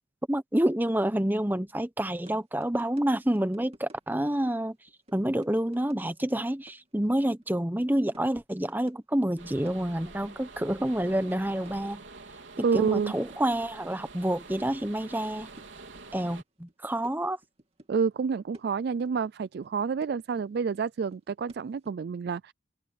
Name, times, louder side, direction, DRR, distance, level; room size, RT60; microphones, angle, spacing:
voice 1, 0.3-4.8 5.1-12.0 12.7-15.5 16.1-17.4, right 1 dB, 10° right, 0.9 m, -28 dB
sound 1, 2.2-2.4 2.6-3.1 3.4-4.4 4.7-6.3 6.6-7.5 7.8-7.9 8.1-9.0 9.3-10.1 10.8-11.9 12.4-13.0 13.3-14.9 15.2-16.4 16.7-17.9 18.2-19.3 19.6-20.8 21.1-21.9, right 1 dB, 30° right, 2.5 m, -54 dB
sound 2, 9.4-16.4, right 3 dB, 70° right, 3.9 m, -47 dB
voice 2, 12.6-13.1 17.9-22.5, right 5 dB, 55° right, 0.3 m, -28 dB
open air
head